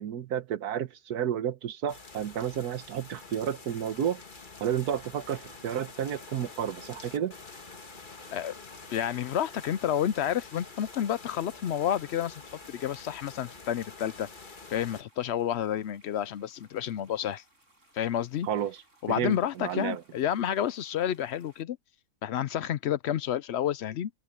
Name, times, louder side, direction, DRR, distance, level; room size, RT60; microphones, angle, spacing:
voice 1, 0.0-4.2 4.6-7.3 18.4-18.8 19.1-20.0, right 9 dB, 80° right, 1.5 m, -31 dB
sound 1, 1.9-15.0, left 4 dB, 35° left, 1.6 m, -47 dB
sound 2, 4.6-21.6, right 1 dB, 50° right, 8.3 m, -65 dB
voice 2, 8.9-12.4 12.7-14.3 14.7-17.4 17.9-18.5 19.0-21.8 22.2-24.1, left 10 dB, 65° left, 0.6 m, -30 dB
open air
omnidirectional pair, 1.6 m